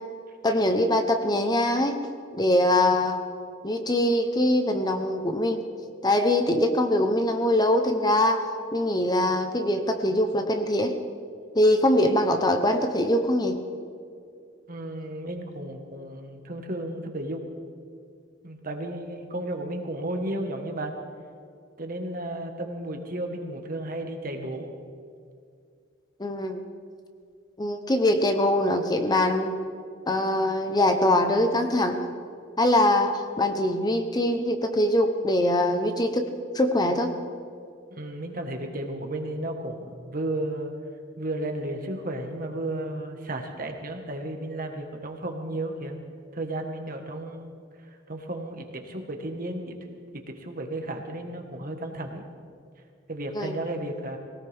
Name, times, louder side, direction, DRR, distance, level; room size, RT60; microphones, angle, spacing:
voice 1, 0.4-2.0 2.3-3.2 3.6-5.6 6.0-8.4 8.7-10.9 11.5-13.6 26.2-26.6 27.6-29.5 30.1-32.1 32.6-36.3 36.5-37.1 53.4-53.6, left 1 dB, 20° left, 6 dB, 1.0 m, -23 dB
voice 2, 14.7-17.5 18.4-21.0 21.8-24.7 38.0-40.7 41.2-46.0 46.3-47.5 48.1-49.8 50.1-52.2 53.1-54.2, right 1 dB, 50° right, 4 dB, 1.6 m, -33 dB
20.5 x 18.0 x 3.6 m, 2.3 s
head